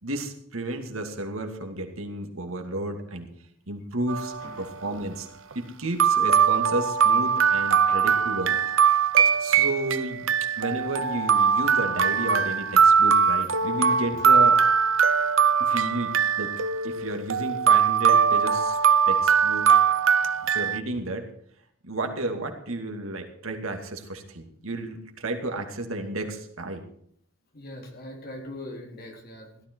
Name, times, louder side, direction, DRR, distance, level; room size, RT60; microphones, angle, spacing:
voice 1, 0.0-3.3 3.7-5.3 5.5-9.0 9.4-10.2 10.6-14.6 15.6-16.5 16.8-18.8 19.1-19.7 20.5-21.3 21.8-26.8, right 2 dB, 80° right, 4 dB, 2.5 m, -32 dB
sound 1, 4.1-4.6 5.5-5.6 6.0-20.8, right 6 dB, 65° right, 0.7 m, -21 dB
voice 2, 27.5-29.6, left 1 dB, 45° left, 1 dB, 3.8 m, -41 dB
16.5 x 12.5 x 4.7 m, 0.65 s
head